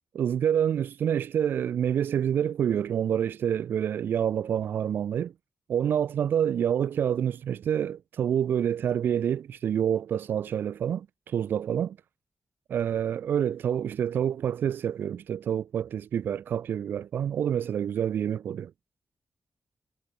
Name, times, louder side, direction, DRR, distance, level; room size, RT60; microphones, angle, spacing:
voice 1, 0.1-5.3 5.7-12.0 12.7-18.7, right 9 dB, 90° right, 1.1 m, -27 dB
cardioid pair, 65°, 3 cm